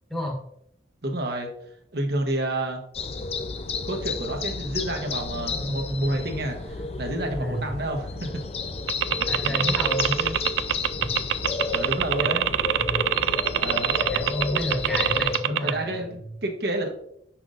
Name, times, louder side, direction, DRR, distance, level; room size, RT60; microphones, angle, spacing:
voice 1, 0.1-0.4 7.4-7.7 9.3-10.4 11.0-11.1 12.2-12.3 12.8-13.0 14.0-16.2, equal, ahead, -2 dB, 1.2 m, -30 dB
voice 2, 1.0-1.5 1.9-2.8 3.9-8.4 9.4-9.9 11.7-12.5 13.6-13.9 15.6-16.9, right 1 dB, 60° right, 2 dB, 1.0 m, -29 dB
sound 1, 2.9-15.4, left 4 dB, 35° left, 0.5 m, -31 dB
sound 2, 8.9-15.7, right 10 dB, 85° right, 0.3 m, -23 dB
6.5 x 5.8 x 2.5 m, 0.71 s
head